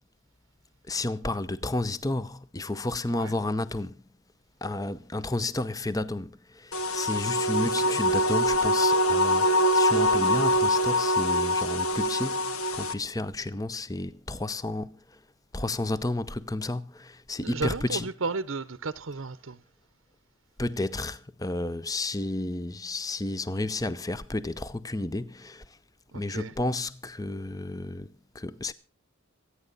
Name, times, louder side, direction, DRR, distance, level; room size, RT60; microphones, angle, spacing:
voice 1, 0.9-3.9 4.6-12.4 12.7-15.0 15.5-18.1 20.6-25.6 26.1-28.7, left 2 dB, 15° left, 0.7 m, -31 dB
sound 1, 6.7-12.9, left 1 dB, 75° left, 1.3 m, -24 dB
voice 2, 7.6-8.0 17.4-19.6 26.1-26.5, right 4 dB, 60° right, 0.8 m, -34 dB
26.0 x 9.8 x 4.0 m
head